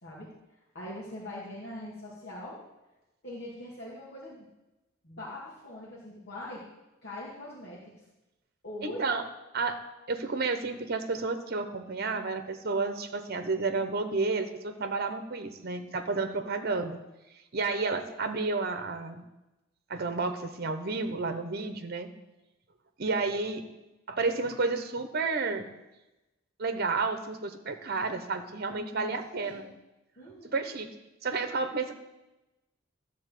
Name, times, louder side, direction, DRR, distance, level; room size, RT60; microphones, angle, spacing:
voice 1, 0.0-0.3 0.7-2.6 3.2-4.5 5.0-6.6 7.0-7.9 8.6-9.1 15.5-15.8 28.9-29.6 30.2-30.6, left 1 dB, 60° left, -7 dB, 2.2 m, -42 dB
voice 2, 8.8-9.2 9.5-9.8 10.1-17.0 17.5-19.2 19.9-22.1 23.0-23.6 24.1-25.7 26.6-29.6 30.4-30.9 31.2-31.9, right 3 dB, 50° right, 8 dB, 1.0 m, -31 dB
12.5 x 4.2 x 8.3 m, 1.0 s
head